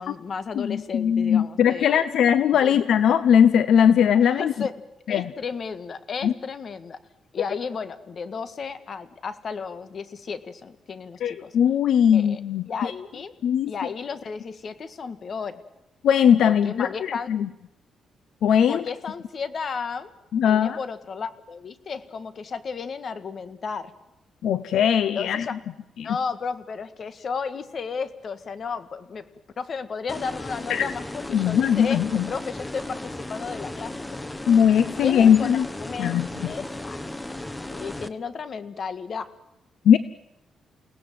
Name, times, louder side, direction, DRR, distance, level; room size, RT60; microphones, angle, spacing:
voice 1, 0.0-2.0 2.6-2.8 4.2-4.8 5.1-7.0 7.3-11.6 12.1-12.4 12.7-13.3 13.7-15.6 16.4-17.3 18.7-20.1 20.4-23.9 25.1-25.6 26.0-29.3 29.6-33.9 34.9-37.0 37.7-39.3, left 5 dB, 50° left, 11 dB, 1.7 m, -33 dB
voice 2, 0.6-4.5 5.1-5.3 6.2-6.3 11.2-12.9 13.4-13.7 16.0-16.9 17.3-17.5 18.4-18.8 20.3-20.8 24.4-25.4 26.0-26.2 30.7-30.9 31.3-32.3 34.5-35.7 36.0-36.5 39.8-40.0, left 8 dB, 75° left, 13 dB, 0.9 m, -19 dB
sound 1, 30.1-38.1, left 1 dB, 10° left, 1.2 m, -35 dB
29.5 x 18.0 x 7.7 m, 0.92 s
cardioid pair, 110°, 0 cm